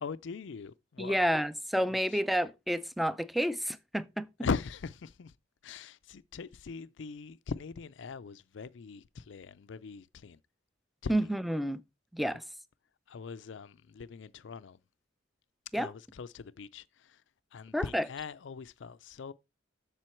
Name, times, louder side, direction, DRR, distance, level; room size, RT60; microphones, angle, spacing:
voice 1, 0.0-1.2 2.1-2.2 4.4-5.3 5.6-10.4 11.0-11.3 13.1-14.8 15.7-17.2 17.5-19.3, left 5 dB, 65° left, 0.4 m, -40 dB
voice 2, 1.0-4.3 11.1-11.8 12.1-12.4 15.7-15.9 17.7-18.1, equal, ahead, 0.4 m, -30 dB
7.6 x 6.8 x 4.4 m
head